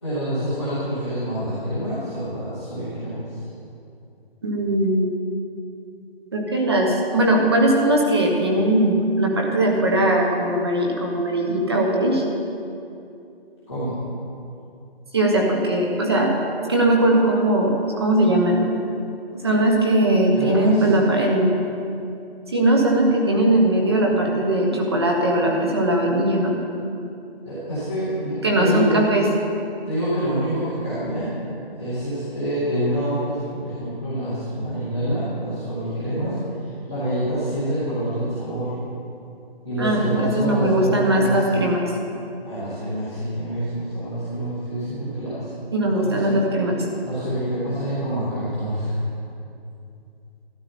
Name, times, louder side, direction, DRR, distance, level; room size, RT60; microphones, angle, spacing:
voice 1, 0.0-3.2 13.7-14.0 20.3-20.9 27.4-28.9 29.8-31.3 31.7-36.3 36.9-38.7 39.6-41.4 42.4-45.5 46.0-46.3 47.0-49.0, right 1 dB, ahead, -21 dB, 0.7 m, -26 dB
voice 2, 4.4-5.1 6.3-12.2 15.1-16.3 16.6-18.6 19.3-21.5 22.5-26.6 28.4-29.3 39.8-41.8 45.7-46.8, right 1 dB, 25° right, 0 dB, 1.1 m, -19 dB
12.5 x 12.0 x 4.2 m, 2.6 s
hypercardioid pair, 170°, 31 cm